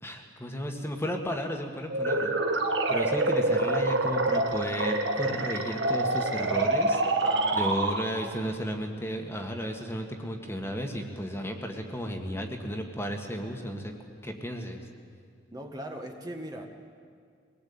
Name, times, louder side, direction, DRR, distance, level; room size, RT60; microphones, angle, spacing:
voice 1, 0.0-2.4 2.9-7.2 7.5-13.9 14.2-14.8, equal, 15° left, 3 dB, 1.9 m, -34 dB
sound 1, 1.9-8.4, right 2 dB, 75° right, 1.8 m, -26 dB
voice 2, 7.2-7.8 15.5-16.7, right 1 dB, 20° right, 2 dB, 1.7 m, -39 dB
23.0 x 19.5 x 8.8 m, 2.1 s
head